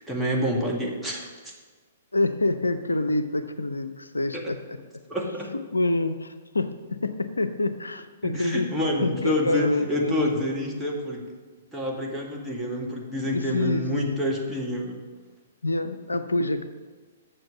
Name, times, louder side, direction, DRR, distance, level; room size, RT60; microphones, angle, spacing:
voice 1, 0.1-1.5 4.3-4.4 5.1-5.5 8.2-11.2 11.7-15.0, left 1 dB, 5° right, -3 dB, 1.7 m, -28 dB
voice 2, 2.1-4.8 5.7-8.7 9.0-10.1 13.3-14.3 15.6-16.6, left 2 dB, 80° left, 10 dB, 0.5 m, -27 dB
7.7 x 6.7 x 6.9 m, 1.4 s
figure-of-eight pair, 115°, 0 cm